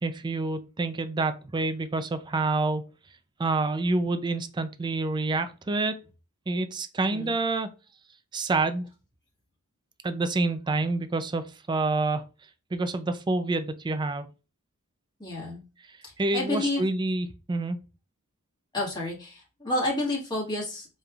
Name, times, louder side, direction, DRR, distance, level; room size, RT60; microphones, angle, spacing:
voice 1, 0.0-2.8 3.4-5.9 6.5-7.7 8.3-8.9 10.0-12.2 12.7-14.3 16.2-17.8, right 3 dB, 20° right, 0.3 m, -27 dB
voice 2, 7.0-7.3 15.2-15.6 16.0-16.8 18.7-20.9, left 2 dB, 20° left, 1.7 m, -30 dB
4.8 x 3.2 x 2.3 m
head